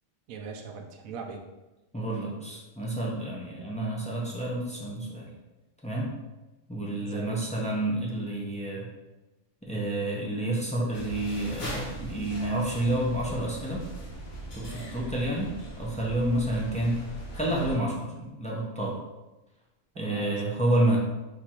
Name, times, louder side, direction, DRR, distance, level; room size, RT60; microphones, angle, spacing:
voice 1, 0.3-1.4 7.0-7.5 19.9-20.6, right 5 dB, 85° right, 2 dB, 1.0 m, -40 dB
voice 2, 1.9-5.3 5.8-6.1 6.7-8.9 9.6-13.8 14.5-17.0 17.3-19.0 20.0-21.0, right 1 dB, 10° left, -4 dB, 0.3 m, -29 dB
sound 1, 10.9-17.8, right 1 dB, 85° left, 1.6 m, -39 dB
4.4 x 2.4 x 4.3 m, 1.1 s
omnidirectional pair, 1.4 m